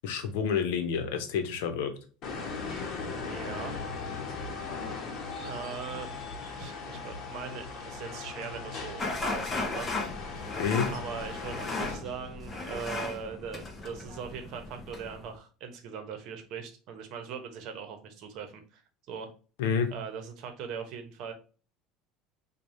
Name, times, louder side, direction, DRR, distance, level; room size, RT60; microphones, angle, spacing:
voice 1, 0.0-1.9 10.6-10.9 19.6-19.9, left 6 dB, 85° left, 7 dB, 0.7 m, -29 dB
sound 1, 2.2-12.0, left 4 dB, 50° left, 1.0 m, -38 dB
voice 2, 3.1-3.7 5.4-6.1 6.5-10.0 10.9-18.8 19.1-19.3 19.9-21.3, right 6 dB, 55° right, 6 dB, 0.8 m, -40 dB
sound 2, 9.0-15.3, left 3 dB, 20° left, 0.6 m, -36 dB
4.7 x 2.3 x 2.7 m, 0.37 s
cardioid pair, 135°, 0 cm